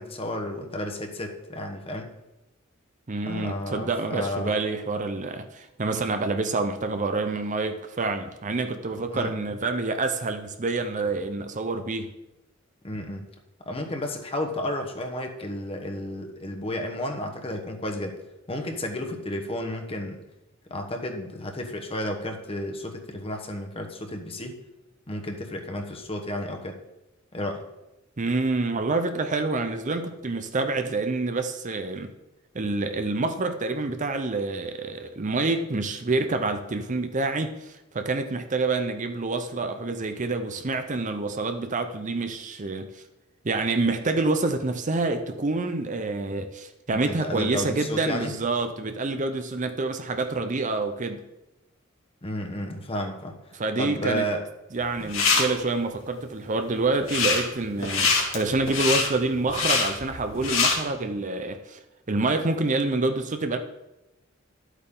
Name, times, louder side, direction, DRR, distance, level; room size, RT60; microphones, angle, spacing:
voice 1, 0.0-2.1 3.3-4.5 9.1-9.3 12.8-13.2 13.7-18.2 18.5-20.2 20.7-24.6 25.1-26.8 27.3-27.6 47.1-48.3 52.2-53.4 53.8-54.4, left 1 dB, 30° left, 1.2 m, -32 dB
voice 2, 3.1-12.1 28.2-32.1 32.5-43.0 43.4-51.2 53.5-54.3 54.7-61.8 62.1-63.6, right 3 dB, 40° right, 0.7 m, -27 dB
sound 1, 54.8-55.4 56.9-57.4 57.8-60.7, left 5 dB, 75° left, 2.3 m, -23 dB
11.5 x 8.2 x 3.8 m
head